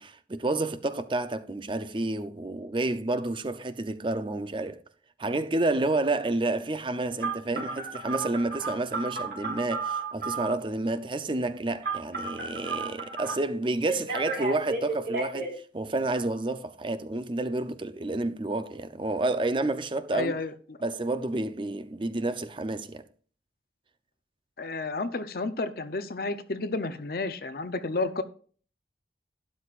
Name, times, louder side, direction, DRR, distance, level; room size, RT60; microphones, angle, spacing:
voice 1, 0.0-4.8 5.2-15.5 15.7-20.4 20.8-23.0, right 2 dB, 30° right, 0.6 m, -30 dB
Telephone, 7.2-10.6 11.8-13.3 13.9-15.5, right 4 dB, 60° right, 3.3 m, -32 dB
voice 2, 20.1-20.8 24.6-28.2, left 3 dB, 55° left, 0.7 m, -31 dB
12.0 x 10.0 x 2.5 m
head